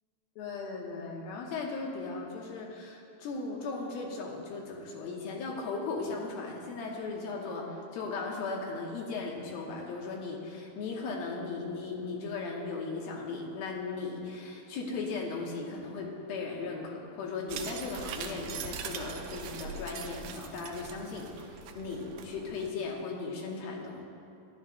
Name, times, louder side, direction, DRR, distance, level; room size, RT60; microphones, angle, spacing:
voice 1, 0.4-24.0, left 4 dB, 75° left, -1 dB, 2.8 m, -37 dB
sound 1, 17.5-22.7, right 6 dB, 85° right, 1.9 m, -41 dB
14.5 x 10.5 x 2.2 m, 2.5 s
omnidirectional pair, 4.4 m